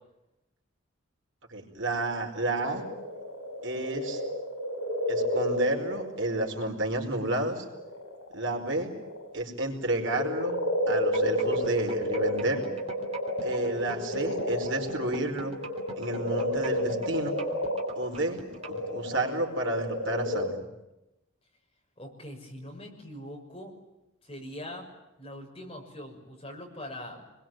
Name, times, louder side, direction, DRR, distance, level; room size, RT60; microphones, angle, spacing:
voice 1, 1.5-2.8 3.6-4.2 5.1-7.6 8.3-8.9 9.3-10.6 10.9-12.6 13.4-15.6 15.9-17.3 17.9-18.4 18.7-20.7, right 2 dB, 65° right, 2 dB, 4.8 m, -30 dB
sound 1, 2.0-7.0 7.6-9.3 9.7-20.4, left 1 dB, 85° left, 7.3 m, -31 dB
sound 2, 10.9-18.8, right 3 dB, 30° right, 3.1 m, -42 dB
voice 2, 22.0-23.8 24.2-24.9 25.2-27.2, left 1 dB, 25° left, 1 dB, 6.4 m, -42 dB
29.0 x 22.0 x 9.2 m, 0.93 s
head